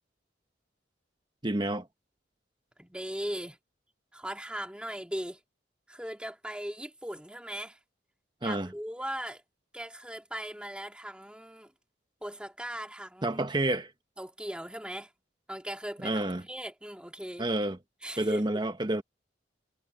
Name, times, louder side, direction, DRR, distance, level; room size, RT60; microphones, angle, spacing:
voice 1, 1.4-1.9 8.4-8.7 13.2-13.9 16.0-16.4 17.4-17.8 18.2-19.0, right 1 dB, 25° right, 1.0 m, -29 dB
voice 2, 2.8-3.6 4.1-5.4 5.9-7.8 8.4-9.4 9.7-11.7 12.2-13.4 14.2-15.1 15.5-17.5 18.0-18.6, equal, 5° right, 2.5 m, -39 dB
head